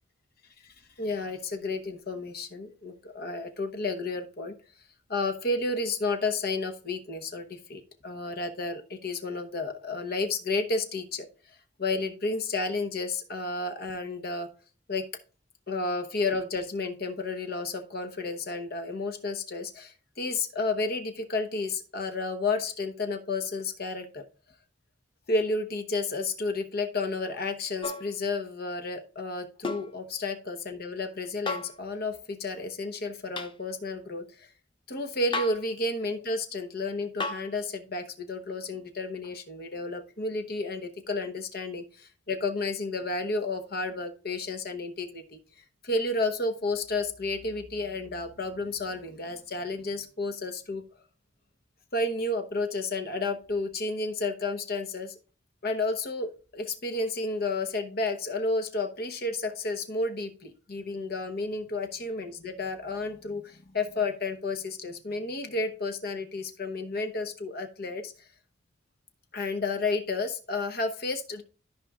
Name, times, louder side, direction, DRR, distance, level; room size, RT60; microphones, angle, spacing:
voice 1, 0.6-4.5 5.1-11.3 11.8-14.5 14.9-15.1 15.7-24.2 25.3-34.5 34.9-45.4 45.8-50.8 51.9-55.1 55.6-68.1 69.3-71.4, left 3 dB, 55° left, 7 dB, 1.1 m, -31 dB
sound 1, 27.8-28.1 29.6-29.9 31.5-31.8 33.4-33.6 35.3-35.7 37.2-37.5 39.2-39.3, left 3 dB, 25° left, 0.6 m, -33 dB
14.0 x 4.9 x 2.4 m, 0.37 s
head